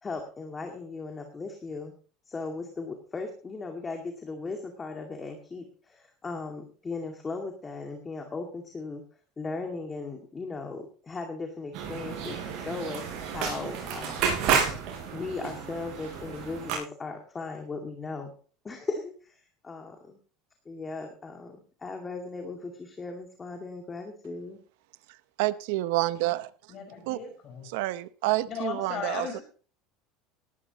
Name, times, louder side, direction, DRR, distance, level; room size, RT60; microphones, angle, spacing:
voice 1, 0.0-2.0 2.3-9.0 9.4-14.3 14.6-14.8 15.1-18.3 18.6-20.2 20.7-24.6, left 3 dB, 20° left, 2.2 m, -37 dB
sound 1, 11.7-16.7, right 7 dB, 60° right, 6.2 m, -31 dB
voice 2, 25.4-26.5 27.1-27.2 27.7-29.4, right 18 dB, 75° right, 0.7 m, -28 dB
voice 3, 26.7-27.7 28.5-29.4, left 7 dB, 45° left, 5.2 m, -36 dB
18.0 x 12.0 x 3.0 m
supercardioid pair, 105°, 0 cm